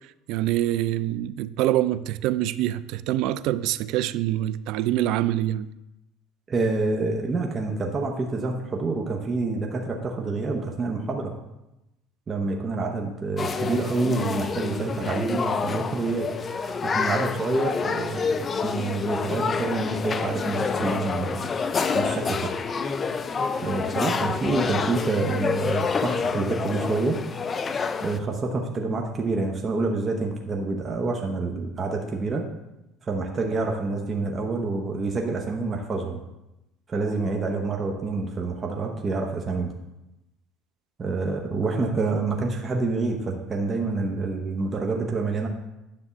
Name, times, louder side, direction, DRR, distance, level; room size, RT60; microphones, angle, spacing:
voice 1, 0.3-5.7, right 13 dB, 65° right, 0.3 m, -25 dB
voice 2, 6.5-11.3 12.3-16.3 16.8-21.5 21.9-22.5 23.6-27.2 28.0-32.4 33.0-36.2 36.9-39.7 41.0-45.5, right 3 dB, 25° right, 0.8 m, -27 dB
sound 1, 13.4-28.2, left 5 dB, 25° left, 0.4 m, -28 dB
9.6 x 3.4 x 6.8 m
cardioid pair, 150°, 0 cm